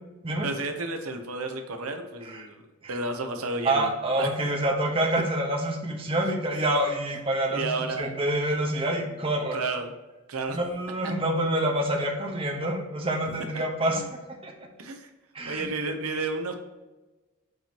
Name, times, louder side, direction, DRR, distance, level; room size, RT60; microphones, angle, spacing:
voice 1, 0.4-2.6 2.9-3.9 4.2-4.3 7.5-8.1 9.5-9.9 10.3-10.6 13.5-14.1 14.8-15.1 15.5-16.5, right 3 dB, 80° right, 5 dB, 0.9 m, -32 dB
voice 2, 3.6-9.6 10.5-14.5 15.3-15.7, right 1 dB, 25° right, 1 dB, 0.9 m, -27 dB
7.9 x 3.0 x 5.2 m, 1.1 s
head